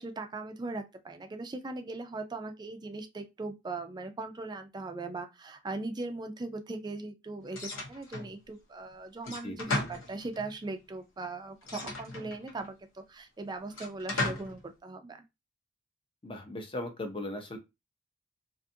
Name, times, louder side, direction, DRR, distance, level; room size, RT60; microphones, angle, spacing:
voice 1, 0.0-15.3, right 3 dB, 20° right, 0.4 m, -39 dB
sound 1, 7.5-8.3 9.2-10.5 11.6-12.7 13.7-14.6, left 2 dB, 85° left, 0.8 m, -36 dB
voice 2, 9.3-9.6 16.2-17.6, left 1 dB, 25° left, 0.6 m, -38 dB
2.5 x 2.4 x 2.6 m
head